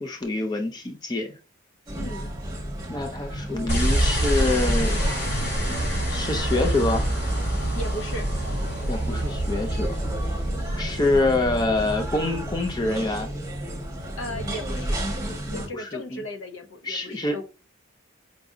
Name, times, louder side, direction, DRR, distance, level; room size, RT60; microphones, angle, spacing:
voice 1, 0.0-1.3 2.9-5.0 6.1-7.1 8.9-10.0 10.8-13.3 15.5-16.2 16.8-17.4, left 2 dB, 20° left, 0.4 m, -26 dB
voice 2, 1.9-2.3 7.7-8.3 14.2-15.0 15.5-17.4, equal, 75° left, 0.7 m, -36 dB
sound 1, 1.9-15.7, right 1 dB, 15° right, 1.2 m, -33 dB
sound 2, 3.7-13.1, right 1 dB, 55° left, 1.9 m, -26 dB
4.9 x 2.7 x 2.3 m
head